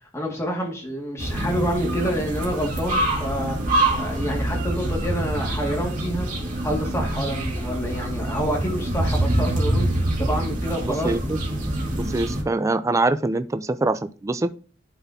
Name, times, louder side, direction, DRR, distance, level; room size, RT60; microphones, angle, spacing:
voice 1, 0.1-6.3 6.6-9.9 10.2-11.3 12.0-12.2, equal, 15° left, 1.9 m, -28 dB
sound 1, 1.2-12.4, right 1 dB, 45° right, 2.0 m, -25 dB
voice 2, 11.0-11.4 12.0-14.5, right 2 dB, 15° right, 0.3 m, -24 dB
11.0 x 4.1 x 2.7 m
head